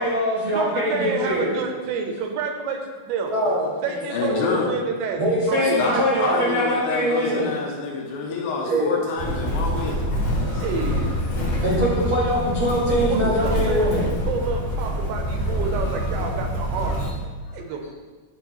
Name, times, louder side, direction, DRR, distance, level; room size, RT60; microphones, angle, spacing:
voice 1, 0.0-1.5 3.2-3.7 4.2-4.4 5.2-7.5 8.7-8.9 11.6-14.1, equal, 75° right, -7 dB, 1.1 m, -23 dB
voice 2, 0.5-3.3 3.8-6.5 8.7-9.0 10.6-11.1 12.9-17.0 17.5-17.9, right 5 dB, 90° right, 3 dB, 2.7 m, -29 dB
voice 3, 3.9-4.7 5.6-10.0 10.5-10.6, left 4 dB, 75° left, -2 dB, 2.6 m, -27 dB
Motor vehicle (road), 9.2-17.1, equal, 50° left, 1.4 m, -26 dB
10.5 x 4.3 x 3.0 m, 1.4 s
omnidirectional pair, 4.6 m